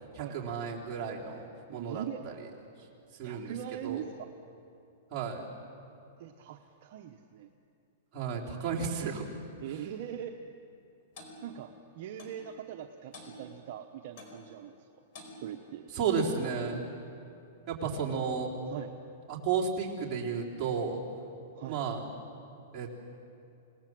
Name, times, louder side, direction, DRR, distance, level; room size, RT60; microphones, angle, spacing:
voice 1, 0.1-2.3 2.8-2.9 3.1-3.5 3.8-4.1 5.1-5.5 8.1-9.3 9.6-9.8 15.9-16.8 17.7-18.5 19.3-21.0 21.7-22.1 22.7-23.0, right 6 dB, 25° right, -5 dB, 3.7 m, -33 dB
voice 2, 1.7-2.2 3.2-4.3 6.2-7.5 9.6-10.3 11.4-14.7 15.4-15.9 18.7-18.9 21.5-21.8, right 10 dB, 50° right, 3 dB, 1.0 m, -41 dB
Clock, 11.2-11.4 12.2-12.4 13.1-13.4 14.2-14.4 15.1-15.4 16.2-16.4, left 2 dB, 45° left, 4.4 m, -48 dB
27.5 x 19.0 x 7.7 m, 2.7 s
supercardioid pair, 160°, 0 cm